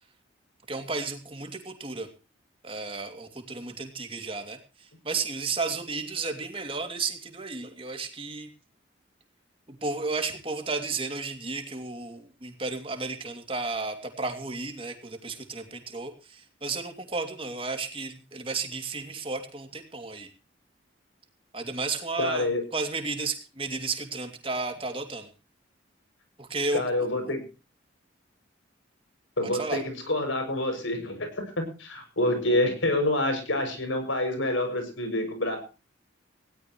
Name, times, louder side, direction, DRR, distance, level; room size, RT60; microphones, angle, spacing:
voice 1, 0.7-2.1 2.6-8.5 9.8-20.3 21.5-25.3 26.4-26.8 27.3-27.4 29.5-29.8, right 3 dB, 30° right, 6 dB, 2.6 m, -33 dB
voice 2, 22.2-22.6 26.7-27.4 29.4-35.6, left 1 dB, 90° left, 6 dB, 6.7 m, -27 dB
19.5 x 17.5 x 3.1 m, 0.34 s
head